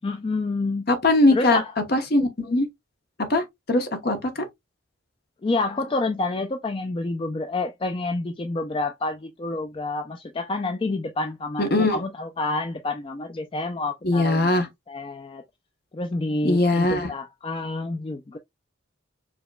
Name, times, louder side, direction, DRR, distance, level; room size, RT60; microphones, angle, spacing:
voice 1, 0.0-0.9 1.3-1.7 5.4-15.4 15.9-18.4, left 2 dB, 25° left, 0.3 m, -28 dB
voice 2, 0.9-1.6 1.9-2.7 3.3-4.4 11.6-12.0 14.0-14.7 16.4-17.1, left 2 dB, 50° left, 0.9 m, -21 dB
5.0 x 2.9 x 2.2 m
head